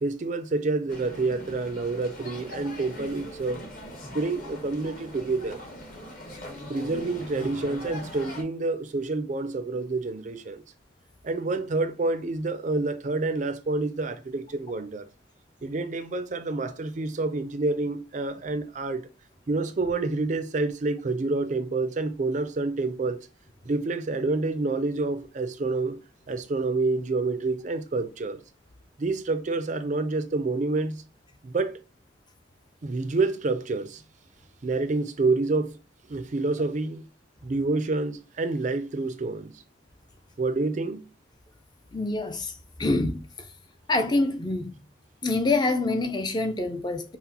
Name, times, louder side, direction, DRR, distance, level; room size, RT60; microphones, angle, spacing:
voice 1, 0.0-3.7 4.0-5.6 6.7-10.6 11.2-15.0 15.6-19.1 19.5-23.2 23.7-26.0 26.3-28.4 29.0-31.0 31.4-31.8 32.8-34.0 34.6-35.8 36.1-37.0 37.4-39.5 40.4-41.1, right 3 dB, 40° right, 0.4 m, -28 dB
sound 1, 0.9-8.4, left 1 dB, 45° left, 1.1 m, -41 dB
voice 2, 41.9-42.5 42.8-43.2 43.9-44.7 45.2-47.2, left 2 dB, 20° left, 0.4 m, -25 dB
5.7 x 2.0 x 2.8 m
head